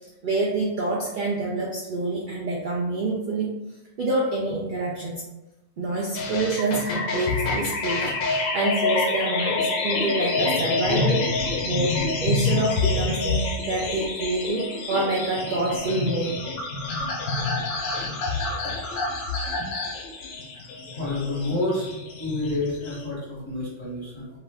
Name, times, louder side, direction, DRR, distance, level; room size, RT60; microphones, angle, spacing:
voice 1, 0.2-3.5 4.0-5.2 5.8-16.4, right 2 dB, 60° right, -3 dB, 0.5 m, -27 dB
sound 1, 6.1-23.1, left 3 dB, 85° left, 1.0 m, -27 dB
voice 2, 20.6-21.9 22.2-24.4, left 2 dB, 25° left, -8 dB, 1.3 m, -29 dB
2.8 x 2.4 x 3.3 m, 1.0 s
omnidirectional pair, 1.3 m